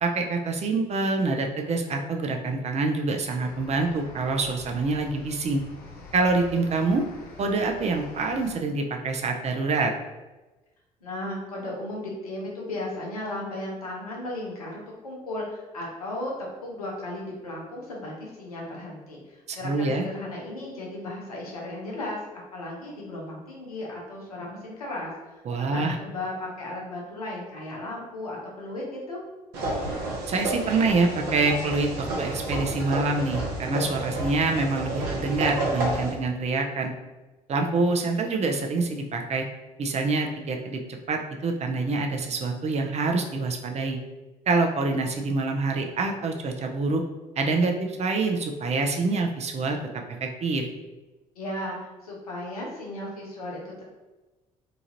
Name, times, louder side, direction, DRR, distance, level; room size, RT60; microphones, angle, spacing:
voice 1, 0.0-5.6 6.1-7.0 7.4-9.9 19.5-20.1 25.5-26.0 30.3-36.9 37.5-39.5 39.8-40.8 41.1-44.0 44.5-47.0 47.4-50.7, right 3 dB, 35° right, 3 dB, 0.5 m, -26 dB
sound 1, 3.4-8.5, left 2 dB, 55° left, 0.8 m, -46 dB
voice 2, 11.0-29.2 51.4-53.8, left 1 dB, 85° left, -3 dB, 0.6 m, -35 dB
sound 2, 29.5-36.1, right 2 dB, 65° right, 0.8 m, -30 dB
2.9 x 2.4 x 2.9 m, 1.1 s
figure-of-eight pair, 50°, 18 cm